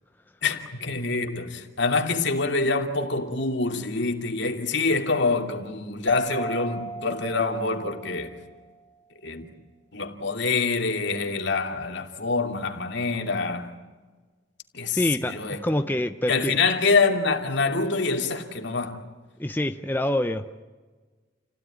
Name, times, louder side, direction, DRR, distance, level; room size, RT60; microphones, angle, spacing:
voice 1, 0.4-8.4 9.2-9.5 9.9-13.7 14.7-15.9 16.3-19.0, left 3 dB, 65° left, 2.8 m, -26 dB
Mallet percussion, 6.1-8.6, right 1 dB, 80° left, 2.4 m, -35 dB
voice 2, 14.9-16.6 19.4-20.6, left 1 dB, 10° left, 0.7 m, -26 dB
29.5 x 17.0 x 10.0 m
head